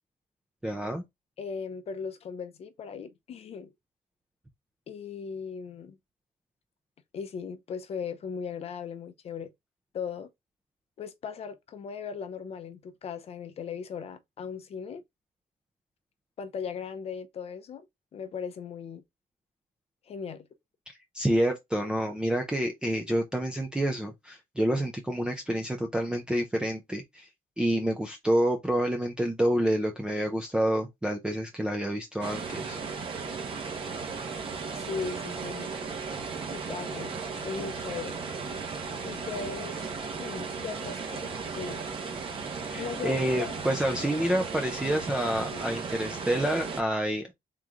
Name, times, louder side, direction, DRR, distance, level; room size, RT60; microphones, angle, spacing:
voice 1, 0.6-1.0 21.1-27.3 27.6-32.8 42.7-47.3, right 1 dB, 5° right, 0.5 m, -28 dB
voice 2, 1.4-3.7 4.9-6.0 7.1-9.5 9.9-10.3 11.0-15.0 16.4-17.9 18.1-19.0 20.1-20.5 34.7-35.7 36.5-37.2 37.4-38.2 39.0-39.8 40.2-41.9 42.7-43.6 45.5-45.6, left 6 dB, 40° left, 0.6 m, -38 dB
sound 1, 32.2-46.8, right 5 dB, 35° right, 1.1 m, -36 dB
3.7 x 3.1 x 3.6 m
cardioid pair, 170°, 16 cm